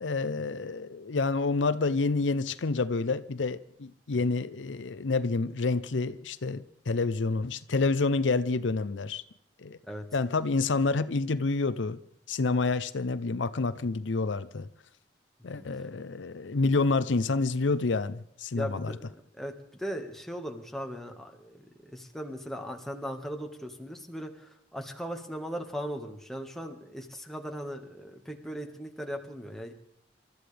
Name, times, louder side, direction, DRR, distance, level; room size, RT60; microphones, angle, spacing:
voice 1, 0.0-9.2 9.6-9.8 10.1-12.0 12.3-14.7 15.4-18.9, left 3 dB, 85° left, 0.6 m, -28 dB
voice 2, 15.5-15.9 18.5-19.5 19.8-29.7, equal, ahead, 1.6 m, -38 dB
27.5 x 13.5 x 3.4 m
head